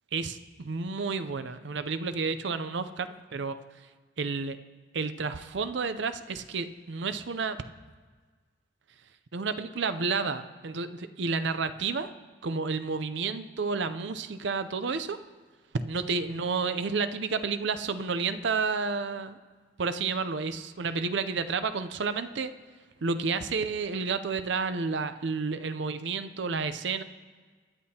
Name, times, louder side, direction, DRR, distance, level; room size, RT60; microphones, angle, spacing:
voice 1, 0.1-3.6 4.2-4.6 4.9-7.6 9.3-12.1 12.4-15.2 15.9-19.4 19.8-22.5 23.0-27.0, right 4 dB, 65° right, 11 dB, 0.5 m, -31 dB
21.0 x 9.6 x 2.8 m, 1.5 s
head